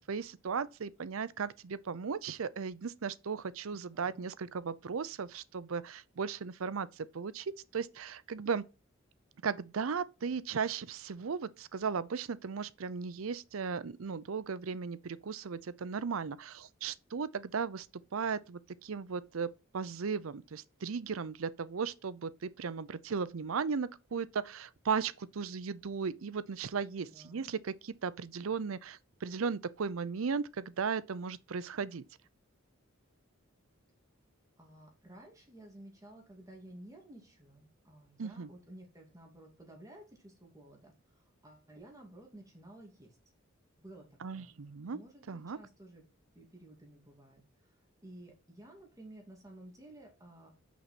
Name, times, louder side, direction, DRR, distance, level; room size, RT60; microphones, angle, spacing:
voice 1, 0.1-8.6 9.4-17.9 18.1-32.0 38.2-38.5 44.2-45.0 45.3-45.6, right 5 dB, 75° right, 0.6 m, -36 dB
voice 2, 3.7-4.3 27.0-27.5 34.6-43.2 43.8-44.0 44.3-44.5 44.9-46.0 46.3-47.8 48.0-50.5, right 1 dB, 15° right, 2.3 m, -54 dB
6.1 x 6.0 x 4.2 m
head